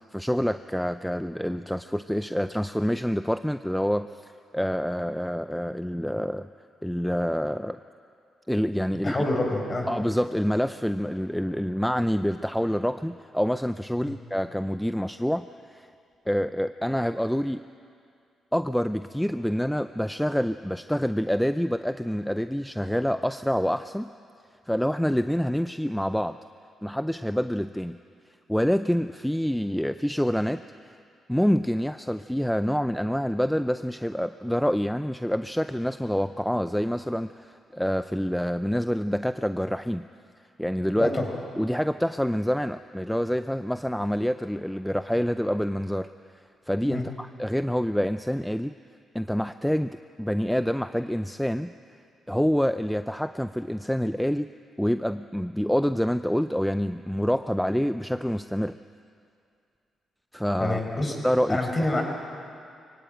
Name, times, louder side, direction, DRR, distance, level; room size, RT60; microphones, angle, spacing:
voice 1, 0.0-6.5 6.8-7.8 8.5-9.2 9.9-15.9 16.3-17.6 18.5-24.1 24.7-26.4 26.8-28.0 28.5-31.0 31.3-40.0 40.6-41.1 41.6-46.1 46.3-48.7 49.1-51.7 52.3-54.5 54.8-58.8 60.3-62.0, equal, 5° left, 11 dB, 0.5 m, -27 dB
voice 2, 9.0-9.9 14.0-14.1 41.0-41.2 46.9-47.0 60.6-61.2 61.5-62.0, left 2 dB, 30° left, 2 dB, 4.9 m, -26 dB
23.0 x 17.0 x 9.0 m, 2.4 s
cardioid pair, 85°, 0 cm